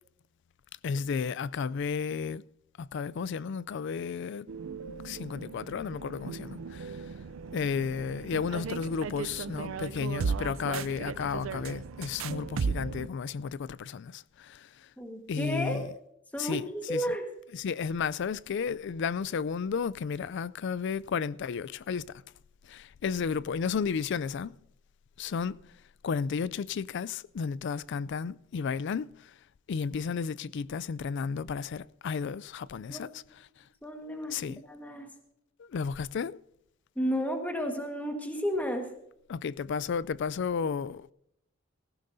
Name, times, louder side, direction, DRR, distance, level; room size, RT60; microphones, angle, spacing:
voice 1, 0.8-2.4 2.8-4.5 5.0-7.0 7.5-14.7 15.3-15.9 16.4-16.6 16.9-17.0 17.5-22.2 22.7-24.6 25.2-25.6 26.0-29.3 29.7-33.2 34.3-34.6 35.6-36.4 39.3-41.1, left 6 dB, 60° left, 0.4 m, -33 dB
sound 1, 4.5-13.1, right 5 dB, 85° right, 0.5 m, -36 dB
voice 2, 15.0-15.9 16.3-17.2 32.9-33.0 33.8-35.1 36.9-38.9, equal, 10° left, 1.5 m, -32 dB
17.5 x 15.5 x 2.7 m
head